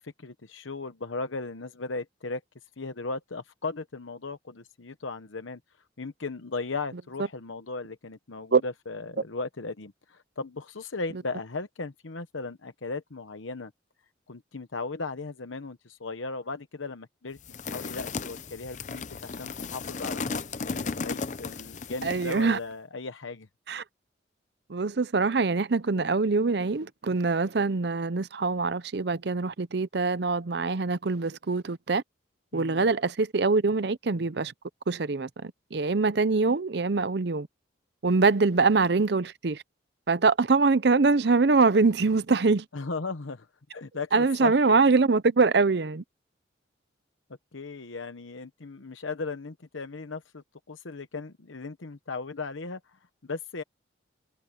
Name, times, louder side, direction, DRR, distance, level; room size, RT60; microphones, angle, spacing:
voice 1, 0.0-2.4 2.8-5.6 6.0-13.7 14.3-17.4 17.6-23.5 32.5-32.9 42.7-43.5 43.7-44.8 47.5-53.6, left 3 dB, 85° left, 1.0 m, -37 dB
sound 1, 17.4-22.5, left 4 dB, 40° left, 0.6 m, -35 dB
voice 2, 22.0-22.6 23.7-23.8 24.7-32.0 32.5-34.5 34.9-37.5 38.0-39.6 40.1-42.7 44.1-46.0, right 4 dB, 55° right, 0.6 m, -24 dB
head